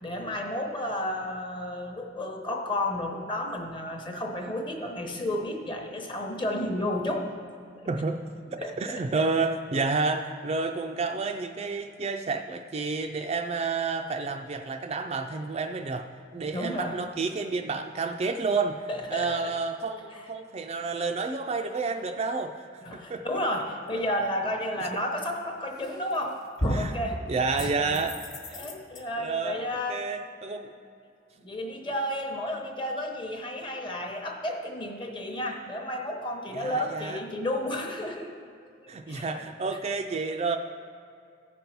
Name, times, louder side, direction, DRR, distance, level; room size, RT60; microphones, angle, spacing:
voice 1, 0.0-7.3 7.8-7.9 8.6-9.3 16.3-17.0 18.9-19.5 20.1-20.2 22.8-26.4 26.7-27.2 27.8-28.0 28.5-30.0 31.4-38.3 38.8-39.4, left 1 dB, 25° left, 2 dB, 0.9 m, -32 dB
voice 2, 7.9-8.2 8.5-18.8 19.1-22.6 22.9-23.2 26.7-26.9 27.3-28.2 28.5-28.7 29.0-30.7 36.5-37.2 38.9-40.6, right 4 dB, 30° right, 5 dB, 0.3 m, -30 dB
sound 1, 25.8-26.2 26.6-27.0 27.6-29.0, equal, 45° left, 1.2 m, -32 dB
14.5 x 5.3 x 4.5 m, 2.4 s
head